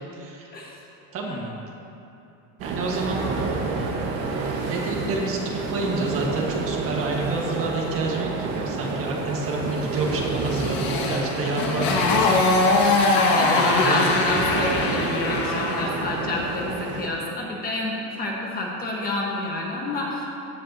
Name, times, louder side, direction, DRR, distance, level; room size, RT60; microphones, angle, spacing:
voice 1, 0.1-0.5 1.1-1.4 2.6-3.3 4.7-12.4 13.7-14.3, right 2 dB, 35° right, -1 dB, 1.6 m, -29 dB
sound 1, 2.6-17.1, right 4 dB, 65° right, 1.7 m, -30 dB
Motorcycle, 9.9-16.0, left 3 dB, 60° left, 1.8 m, -22 dB
voice 2, 13.1-20.3, left 2 dB, 25° left, -2 dB, 1.4 m, -29 dB
16.0 x 9.8 x 2.9 m, 2.7 s
cardioid pair, 155°, 38 cm